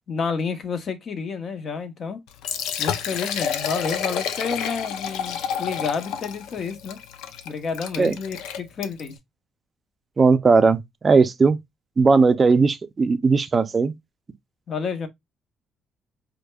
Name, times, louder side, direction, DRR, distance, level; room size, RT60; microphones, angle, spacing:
voice 1, 0.1-2.2 2.8-7.0 7.4-9.2 14.7-15.1, left 5 dB, 50° left, 0.8 m, -30 dB
Liquid, 2.3-9.2, left 8 dB, 90° left, 0.4 m, -30 dB
voice 2, 10.2-11.6 12.0-13.9, right 4 dB, 35° right, 0.4 m, -18 dB
4.8 x 2.2 x 2.2 m
cardioid pair, 90°, 0 cm